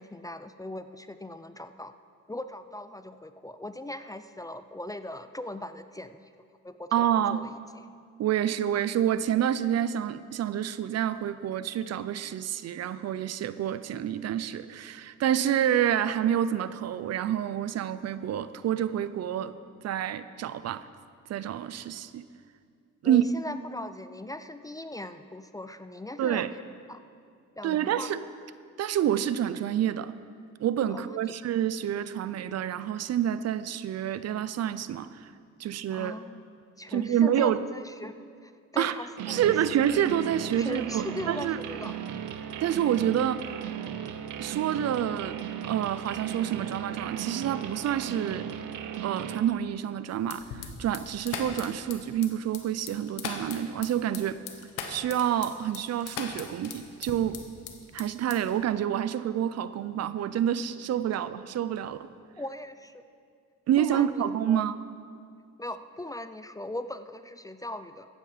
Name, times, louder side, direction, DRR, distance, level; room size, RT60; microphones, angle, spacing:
voice 1, 0.0-1.9 2.3-6.3 6.6-6.9 7.1-7.8 23.0-26.6 26.9-27.0 27.6-28.1 30.9-31.2 35.9-38.2 38.4-39.5 40.6-41.9 62.4-63.0 63.8-64.7 65.6-68.1, left 1 dB, 10° left, 11 dB, 0.4 m, -39 dB
voice 2, 6.9-7.4 8.2-19.5 19.8-20.9 21.3-22.3 23.0-23.2 26.2-26.5 27.6-28.2 28.8-30.1 30.6-35.3 35.6-36.1 36.9-37.6 38.8-38.9 39.3-41.6 42.6-43.5 44.4-48.5 49.0-54.4 54.9-57.4 57.9-62.1 63.7-64.7, right 10 dB, 60° right, 14 dB, 0.5 m, -28 dB
sound 1, 39.2-49.4, right 9 dB, 80° right, 0.9 m, -36 dB
sound 2, 50.2-57.7 58.0-58.6, left 6 dB, 90° left, 1.2 m, -39 dB
13.5 x 9.3 x 5.0 m, 2.2 s
cardioid pair, 90°, 30 cm